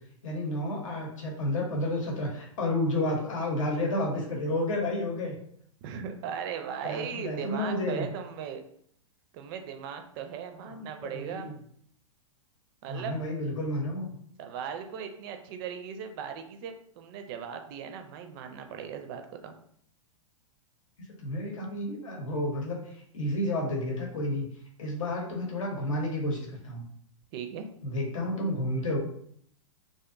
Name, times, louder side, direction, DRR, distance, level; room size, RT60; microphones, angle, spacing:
voice 1, 0.2-5.3 6.8-8.0 10.7-11.5 12.9-14.1 21.2-24.4 24.8-26.8 27.8-29.0, left 1 dB, 70° left, -1 dB, 0.9 m, -31 dB
voice 2, 5.8-8.6 9.3-11.5 12.8-13.2 14.4-19.5 27.3-27.7, right 7 dB, 45° right, 6 dB, 0.4 m, -38 dB
2.5 x 2.2 x 2.4 m, 0.65 s
hypercardioid pair, 110°, 17 cm